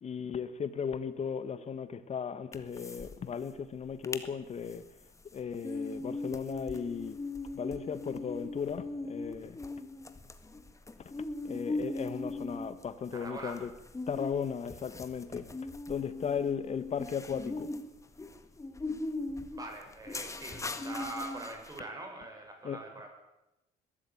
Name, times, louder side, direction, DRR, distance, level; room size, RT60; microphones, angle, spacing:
voice 1, 0.0-4.8 5.3-7.2 7.6-9.6 11.5-13.7 14.1-15.4 15.9-17.7 22.6-22.8, left 7 dB, 40° left, 1.8 m, -36 dB
sound 1, 2.5-3.1 3.4-3.5 3.9-4.3 4.7-21.8, left 2 dB, 20° left, 1.8 m, -39 dB
voice 2, 13.1-13.6 19.5-23.1, right 2 dB, 20° right, 7.0 m, -43 dB
20.5 x 13.5 x 9.5 m
cardioid pair, 110°, 17 cm